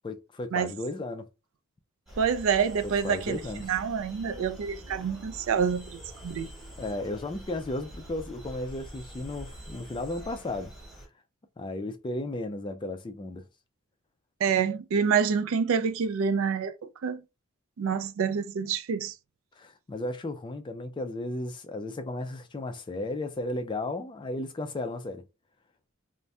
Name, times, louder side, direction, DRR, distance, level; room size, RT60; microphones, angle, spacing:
voice 1, 0.0-1.2 2.8-3.6 6.8-10.7 11.6-13.4 19.6-25.2, left 2 dB, 20° left, 0.3 m, -34 dB
sound 1, 2.1-11.1, right 1 dB, ahead, 1.0 m, -45 dB
voice 2, 2.2-6.5 14.4-16.7 17.0-17.2 17.8-19.1, right 6 dB, 65° right, 0.3 m, -27 dB
2.6 x 2.1 x 3.3 m
head